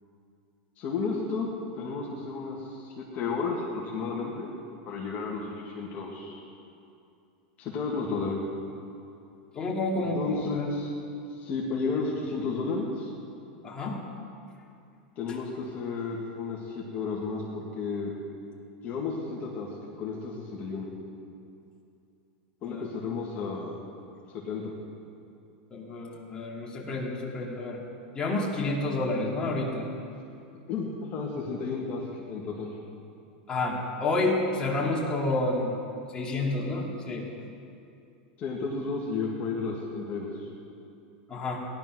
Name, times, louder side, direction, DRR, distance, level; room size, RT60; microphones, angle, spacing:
voice 1, 0.8-1.5 1.7-4.5 4.9-6.4 7.6-8.4 9.9-10.9 11.3-13.1 15.2-18.1 18.8-19.7 20.0-20.9 22.6-23.8 24.3-24.7 30.7-32.8 38.4-40.5, left 4 dB, 35° left, -4 dB, 2.2 m, -32 dB
voice 2, 9.5-10.7 13.6-14.0 22.7-22.8 25.7-27.8 28.1-29.9 33.5-35.7 36.1-37.3 41.3-41.7, left 2 dB, 15° left, -3 dB, 2.7 m, -29 dB
18.0 x 11.5 x 6.2 m, 2.6 s
supercardioid pair, 150°, 5 cm